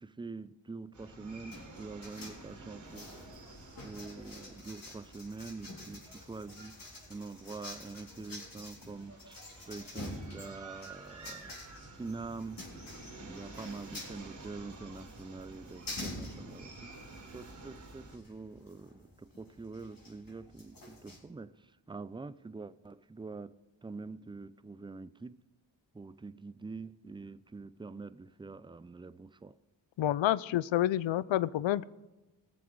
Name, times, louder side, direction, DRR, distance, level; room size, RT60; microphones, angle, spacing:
voice 1, 0.0-3.1 3.4-3.5 3.8-11.6 11.9-12.7 13.2-16.9 17.3-23.6 23.8-25.4 25.9-29.6, right 3 dB, 10° right, 0.4 m, -45 dB
sound 1, 0.9-18.2, right 3 dB, 40° right, 3.4 m, -51 dB
sound 2, 1.5-21.2, left 2 dB, 50° left, 3.8 m, -48 dB
voice 2, 30.0-31.9, left 13 dB, 80° left, 0.5 m, -28 dB
20.5 x 7.3 x 4.6 m
cardioid pair, 65°, 45 cm